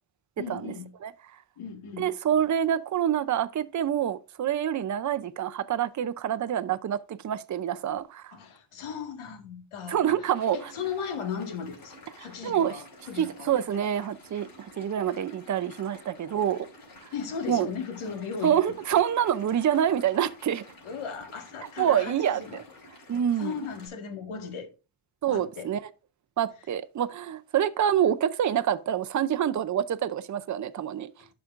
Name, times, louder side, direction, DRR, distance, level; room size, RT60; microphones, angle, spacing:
voice 1, 0.4-0.9 1.6-2.1 8.3-13.5 17.1-18.6 20.8-22.6 23.4-24.7 25.3-25.7 31.2-31.3, left 6 dB, 85° left, 1.8 m, -37 dB
voice 2, 2.0-8.4 9.9-10.6 12.4-12.8 13.2-16.7 17.5-17.7 18.4-20.6 21.8-22.4 23.1-23.6 25.2-25.8 26.4-31.1, right 9 dB, 40° right, 0.6 m, -26 dB
sound 1, 10.3-23.9, left 2 dB, 45° left, 3.9 m, -51 dB
11.5 x 5.2 x 2.5 m
cardioid pair, 115°, 48 cm